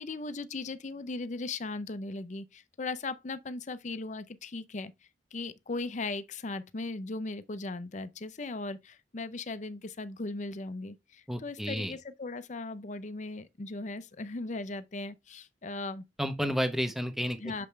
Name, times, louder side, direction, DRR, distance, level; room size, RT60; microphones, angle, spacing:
voice 1, 0.0-4.9 5.3-16.0 17.4-17.7, left 3 dB, 45° left, 0.6 m, -38 dB
voice 2, 11.3-11.9 16.2-17.7, equal, ahead, 0.9 m, -31 dB
6.8 x 5.2 x 3.2 m
head